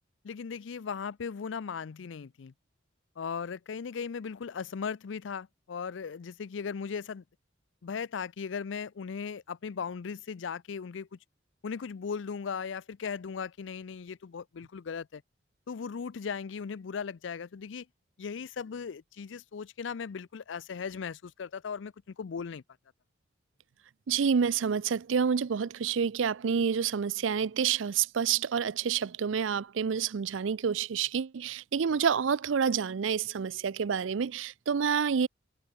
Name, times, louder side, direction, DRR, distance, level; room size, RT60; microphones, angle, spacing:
voice 1, 0.2-2.5 3.2-7.2 7.8-11.2 11.6-15.2 15.7-17.9 18.2-22.6, left 6 dB, 75° left, 0.5 m, -37 dB
voice 2, 24.1-35.3, right 7 dB, 85° right, 0.5 m, -28 dB
head